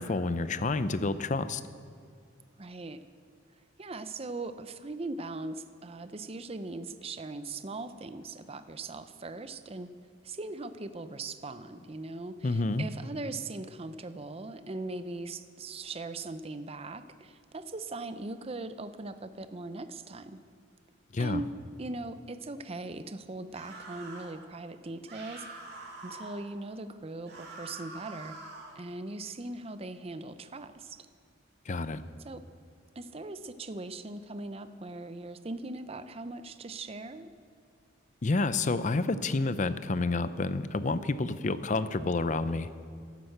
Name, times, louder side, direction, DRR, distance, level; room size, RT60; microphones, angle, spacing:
voice 1, 0.0-1.6 12.4-12.9 21.1-21.4 31.7-32.0 38.2-42.7, left 3 dB, 35° left, 13 dB, 0.5 m, -29 dB
voice 2, 2.6-3.0 3.8-9.9 10.2-20.4 21.2-21.5 21.8-25.6 26.0-28.4 28.8-31.1 32.2-32.4 33.0-37.3, right 2 dB, 30° right, 11 dB, 0.5 m, -40 dB
sound 1, 23.5-24.3 25.1-26.4 27.2-28.8, right 2 dB, 55° right, 2.9 m, -45 dB
12.5 x 12.0 x 7.9 m, 2.1 s
head